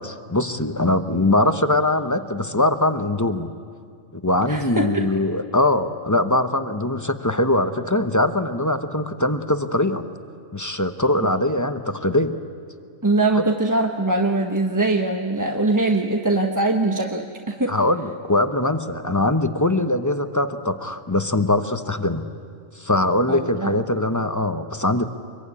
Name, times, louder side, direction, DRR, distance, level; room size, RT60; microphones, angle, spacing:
voice 1, 0.0-3.5 4.1-10.0 10.5-12.4 17.7-22.3 22.7-25.1, left 1 dB, 15° left, 8 dB, 0.8 m, -22 dB
voice 2, 4.5-5.2 13.0-17.8 23.3-23.8, right 2 dB, 15° right, 2 dB, 1.0 m, -22 dB
25.5 x 22.5 x 9.8 m, 2.1 s
omnidirectional pair, 1.4 m